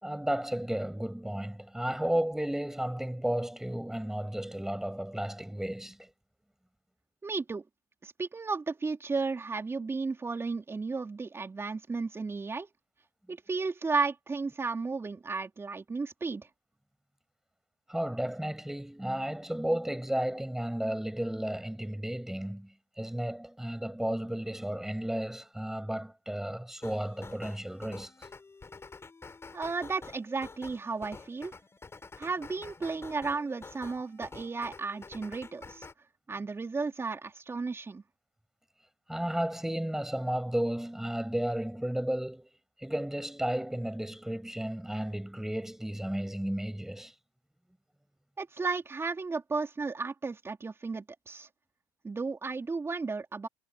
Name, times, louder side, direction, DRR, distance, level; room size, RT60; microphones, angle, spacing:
voice 1, 0.0-6.1 17.9-28.1 39.1-42.5 42.8-47.1, right 1 dB, 5° right, 6.9 m, -33 dB
voice 2, 7.2-7.6 8.0-12.7 13.3-16.5 29.5-31.6 32.2-35.9 36.3-38.0 48.4-51.5 52.0-53.5, right 4 dB, 20° right, 4.0 m, -34 dB
sound 1, 26.8-35.9, left 4 dB, 20° left, 7.3 m, -48 dB
hypercardioid pair, 75°, 12 cm